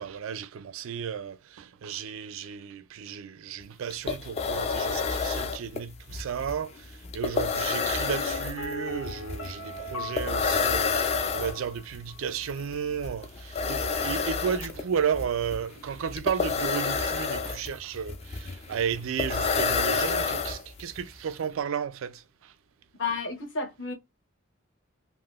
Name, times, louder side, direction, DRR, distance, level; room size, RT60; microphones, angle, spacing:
voice 1, 0.0-22.5, right 7 dB, 75° right, 0.4 m, -33 dB
sound 1, 3.6-3.7 3.9-21.0, left 5 dB, 30° left, 0.3 m, -29 dB
Piano, 8.1-11.8 12.1-12.2, left 3 dB, 80° left, 0.5 m, -40 dB
voice 2, 23.0-23.9, left 4 dB, 60° left, 0.9 m, -31 dB
3.5 x 2.1 x 2.3 m
head